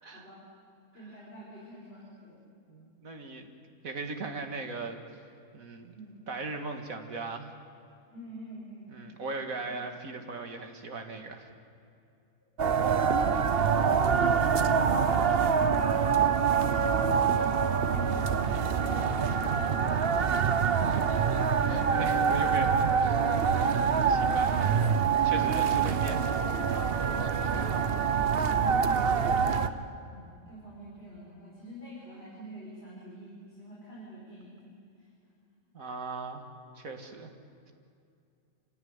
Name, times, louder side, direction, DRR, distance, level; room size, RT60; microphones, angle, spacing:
voice 1, 0.1-0.4 0.9-2.4 5.9-6.2 8.1-9.0 9.5-9.8 14.7-19.1 19.4-20.3 27.6-29.6 30.1-35.1, equal, 45° left, -7 dB, 6.2 m, -47 dB
voice 2, 2.7-3.5 3.8-5.0 5.5-5.9 6.3-7.5 8.9-11.5 20.8-24.9 25.2-26.4 35.7-36.5 36.7-37.3, right 3 dB, 75° right, 4 dB, 2.4 m, -39 dB
sound 1, 12.6-29.7, right 6 dB, 50° right, 1.0 m, -25 dB
27.0 x 16.5 x 9.6 m, 2.5 s
omnidirectional pair, 1.4 m